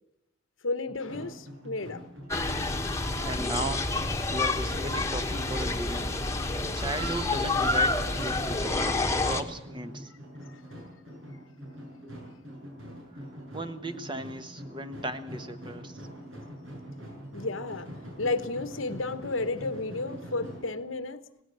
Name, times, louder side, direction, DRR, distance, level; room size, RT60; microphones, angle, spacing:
voice 1, 0.6-2.1 17.3-17.9 18.2-21.2, left 3 dB, 85° left, 1.2 m, -32 dB
sound 1, 0.9-20.8, equal, 80° right, 7.4 m, -43 dB
sound 2, 2.3-9.4, left 2 dB, 15° left, 1.3 m, -28 dB
voice 2, 3.2-3.9 4.3-6.2 6.7-10.1 13.5-16.0, right 1 dB, 25° right, 1.3 m, -36 dB
18.5 x 17.0 x 8.7 m
head